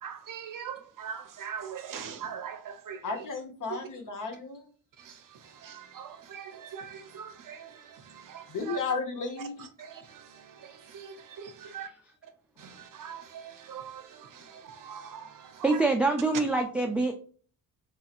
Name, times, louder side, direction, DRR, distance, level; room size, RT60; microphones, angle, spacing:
voice 1, 0.0-3.3 3.7-3.9 5.0-8.8 9.4-11.9 12.6-15.9, right 7 dB, 50° right, 0.6 m, -42 dB
voice 2, 3.0-4.7 8.5-9.6, left 4 dB, 50° left, 1.0 m, -33 dB
voice 3, 15.6-17.1, right 3 dB, 5° right, 0.3 m, -25 dB
3.1 x 2.7 x 2.4 m
cardioid pair, 75°, 41 cm